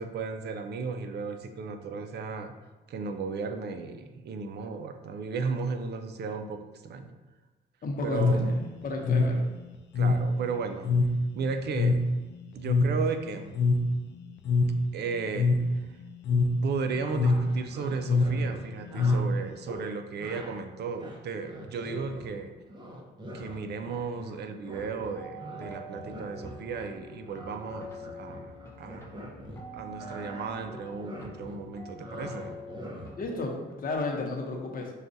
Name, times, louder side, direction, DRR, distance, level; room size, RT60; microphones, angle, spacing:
voice 1, 0.0-2.5 2.9-7.1 8.0-8.5 10.0-10.9 11.4-12.0 12.5-13.6 14.9-16.0 16.3-22.5 23.3-29.1 29.7-32.6, right 4 dB, 55° right, 7 dB, 0.5 m, -35 dB
voice 2, 7.8-9.4 33.2-34.9, left 3 dB, 45° left, 1 dB, 0.8 m, -33 dB
sound 1, 8.1-19.7, left 2 dB, 65° left, 0.4 m, -26 dB
sound 2, 17.0-19.2 19.7-19.9 20.2-20.6 20.9-22.4 22.7-24.4 24.6-29.6 29.9-33.3, equal, 25° right, 0.7 m, -43 dB
sound 3, 25.2-34.0, equal, 15° left, 0.6 m, -45 dB
6.2 x 2.3 x 2.6 m, 1.2 s
cardioid pair, 90°, 20 cm